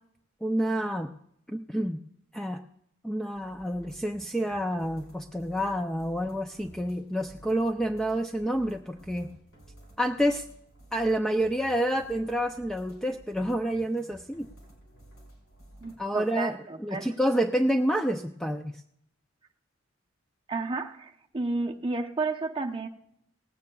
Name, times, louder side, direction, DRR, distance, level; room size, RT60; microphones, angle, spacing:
voice 1, 0.4-1.1 1.5-2.0 2.3-2.6 3.0-9.3 10.0-10.5 10.9-14.5 16.0-18.8, equal, 5° left, 5 dB, 0.4 m, -28 dB
sound 1, 3.3-16.0, right 1 dB, 85° left, 4.4 m, -53 dB
voice 2, 15.8-17.1 20.5-22.9, right 3 dB, 25° right, 3 dB, 0.8 m, -32 dB
19.0 x 16.5 x 2.3 m, 0.74 s
head